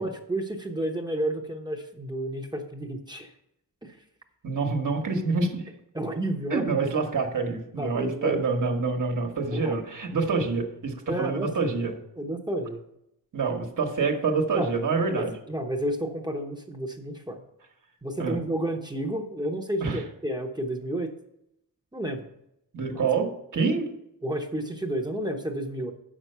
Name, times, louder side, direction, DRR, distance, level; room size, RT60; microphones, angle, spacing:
voice 1, 0.0-3.3 3.8-4.0 5.9-6.9 7.8-8.4 9.5-9.8 11.1-11.5 12.2-12.8 14.5-14.7 15.1-17.4 18.0-21.1 21.9-22.3 22.9-23.0 24.2-25.9, right 1 dB, 10° right, 3 dB, 0.8 m, -31 dB
voice 2, 4.4-5.7 6.5-12.0 13.3-15.3 18.2-18.4 19.8-20.0 22.7-23.9, right 4 dB, 60° right, 3 dB, 1.3 m, -27 dB
7.5 x 6.1 x 5.5 m, 0.79 s
wide cardioid pair, 130°, 35 cm